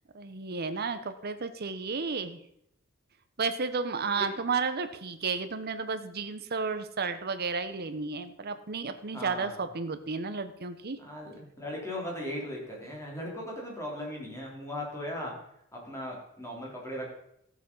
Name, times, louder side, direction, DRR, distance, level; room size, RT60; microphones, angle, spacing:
voice 1, 0.1-2.4 3.4-11.0, right 4 dB, 45° right, 10 dB, 0.9 m, -32 dB
voice 2, 9.1-9.6 11.0-15.3 15.7-17.1, left 1 dB, 15° left, -2 dB, 3.5 m, -38 dB
14.0 x 7.4 x 5.5 m, 0.76 s
head